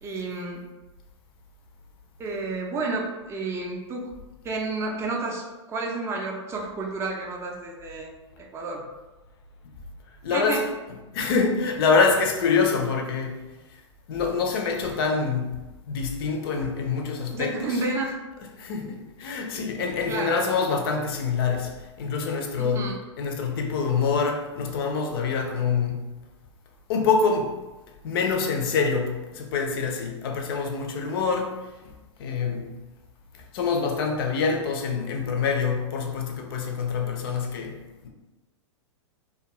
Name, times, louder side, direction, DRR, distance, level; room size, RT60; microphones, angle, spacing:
voice 1, 0.0-0.6 2.2-4.1 4.4-8.1 8.4-8.8 10.3-10.6 17.3-18.2 20.1-20.4 22.6-23.0, right 3 dB, 15° right, 0.4 m, -30 dB
voice 2, 10.2-10.6 11.1-13.4 14.1-17.8 18.6-22.9 23.2-26.1 26.9-27.6 28.0-31.9 32.2-32.7 33.5-37.8 38.0-38.1, left 5 dB, 50° left, 0.5 m, -26 dB
2.3 x 2.2 x 2.9 m
figure-of-eight pair, 105°, 16 cm